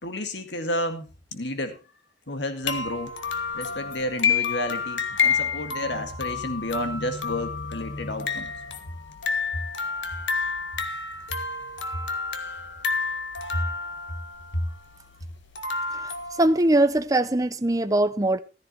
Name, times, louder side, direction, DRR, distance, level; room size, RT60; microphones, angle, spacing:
voice 1, 0.0-1.8 2.3-3.1 3.5-8.5 13.5-13.6, left 1 dB, 65° left, 1.9 m, -31 dB
sound 1, 2.6-17.0, left 5 dB, 80° left, 1.7 m, -30 dB
voice 2, 16.4-18.4, right 1 dB, 20° right, 0.7 m, -21 dB
15.0 x 13.5 x 3.0 m
head